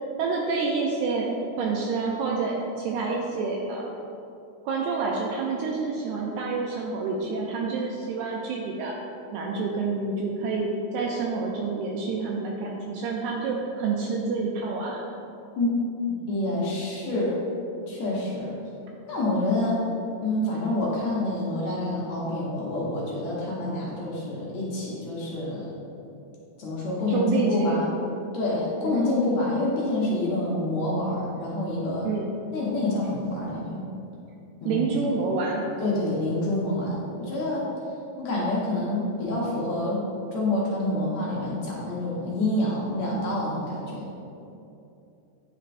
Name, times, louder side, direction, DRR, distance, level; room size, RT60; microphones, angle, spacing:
voice 1, 0.2-1.3 1.6-3.9 4.6-8.9 9.3-15.0 27.1-27.8 28.8-29.0 32.0-32.3 34.7-35.6, right 4 dB, 80° right, -1 dB, 1.8 m, -28 dB
voice 2, 16.0-17.4 17.9-18.6 19.1-19.8 20.2-25.8 26.6-27.9 28.3-32.1 32.5-33.8 34.6-34.8 35.8-37.7 38.2-44.1, left 1 dB, 65° left, -5 dB, 2.0 m, -27 dB
9.8 x 4.4 x 2.5 m, 2.7 s
omnidirectional pair, 3.8 m